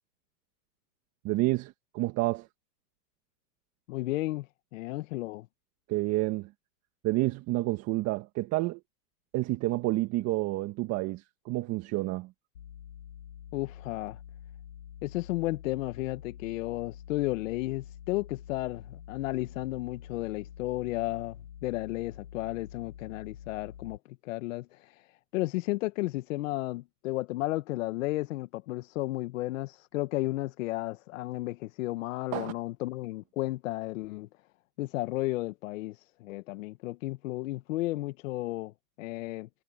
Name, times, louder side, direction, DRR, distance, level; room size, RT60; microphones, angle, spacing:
voice 1, 1.2-2.5 5.9-6.5 7.0-8.8 9.3-12.3 32.3-32.5, right 19 dB, 30° right, 1.6 m, -29 dB
voice 2, 3.9-4.5 4.7-5.5 13.5-14.2 15.0-25.1 25.3-34.3 34.8-39.5, left 18 dB, 50° left, 1.1 m, -33 dB
sound 1, 12.5-24.0, left 9 dB, 85° left, 8.0 m, -47 dB
hypercardioid pair, 135°, 49 cm